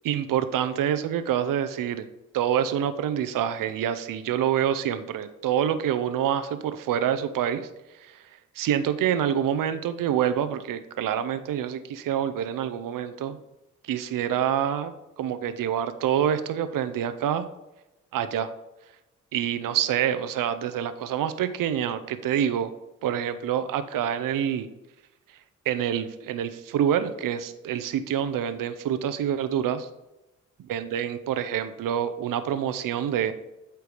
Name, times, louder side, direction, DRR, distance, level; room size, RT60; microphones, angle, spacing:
voice 1, 0.0-2.1 2.3-7.7 8.0-8.2 8.6-13.4 13.9-17.5 18.1-18.5 19.3-22.7 23.0-24.7 25.7-29.9 30.7-33.3, right 9 dB, 90° right, 11 dB, 0.6 m, -26 dB
8.4 x 4.6 x 4.9 m, 0.95 s
cardioid pair, 70°, 32 cm